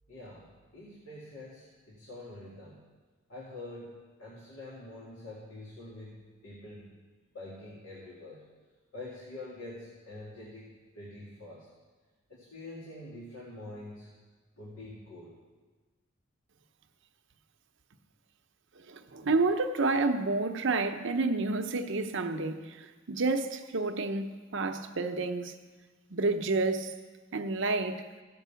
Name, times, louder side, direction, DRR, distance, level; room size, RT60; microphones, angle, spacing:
voice 1, 0.1-2.9 3.3-6.9 7.3-8.4 8.9-11.7 12.3-14.1 14.6-15.4, left 2 dB, 80° left, 2.3 m, -46 dB
voice 2, 18.9-25.5 26.1-26.9 27.3-28.0, right 3 dB, 65° right, 0.8 m, -29 dB
16.0 x 5.4 x 6.9 m
head